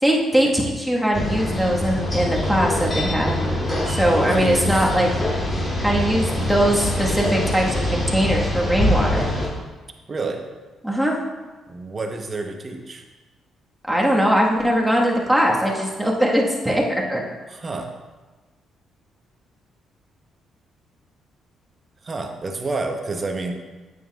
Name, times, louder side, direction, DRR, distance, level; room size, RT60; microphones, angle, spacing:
voice 1, 0.0-3.4 3.9-5.1 5.8-9.3 10.8-11.2 13.9-16.8 17.1-17.2, equal, ahead, -3 dB, 1.5 m, -20 dB
sound 1, 1.1-9.5, left 1 dB, 30° left, 2.5 m, -24 dB
voice 2, 4.3-4.9 10.1-10.4 11.7-13.0 17.5-17.9 22.0-23.5, right 3 dB, 35° right, 4 dB, 0.9 m, -29 dB
8.8 x 7.8 x 2.4 m, 1.3 s
cardioid pair, 80°, 0 cm